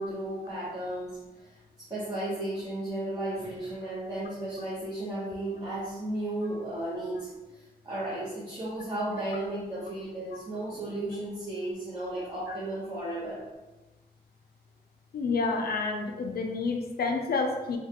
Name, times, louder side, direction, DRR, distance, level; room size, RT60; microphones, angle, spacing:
voice 1, 0.0-13.4, right 1 dB, 25° right, -10 dB, 0.8 m, -34 dB
voice 2, 15.1-17.8, left 4 dB, 70° left, 2 dB, 0.4 m, -29 dB
3.0 x 2.2 x 2.8 m, 1.1 s
wide cardioid pair, 105°, 17 cm